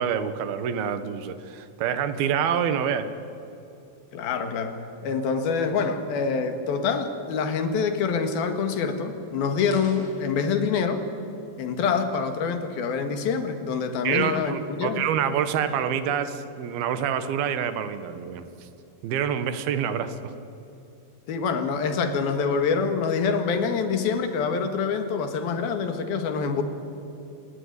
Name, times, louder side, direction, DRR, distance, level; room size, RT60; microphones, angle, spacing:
voice 1, 0.0-3.1 14.0-18.7 19.0-20.3, right 8 dB, 75° right, 11 dB, 3.1 m, -27 dB
voice 2, 4.1-4.8 5.0-11.0 11.6-15.0 21.3-26.6, left 5 dB, 75° left, 8 dB, 3.6 m, -26 dB
sound 1, 9.7-12.7, left 1 dB, 35° left, 5.1 m, -49 dB
28.0 x 18.5 x 9.7 m, 2.8 s
omnidirectional pair, 4.4 m